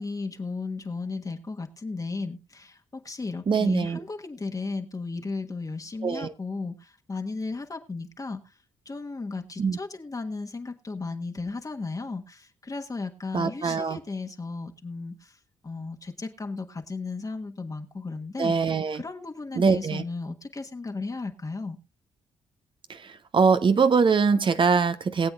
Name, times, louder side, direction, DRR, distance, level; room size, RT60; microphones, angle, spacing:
voice 1, 0.0-8.5 8.8-15.4 15.6-21.8, left 3 dB, 30° left, 1.4 m, -35 dB
voice 2, 3.5-4.0 6.0-6.3 9.6-9.8 13.3-14.0 18.4-19.0 19.5-20.0 22.9-25.3, right 5 dB, 45° right, 0.9 m, -23 dB
22.0 x 7.8 x 2.4 m
supercardioid pair, 50°, 12 cm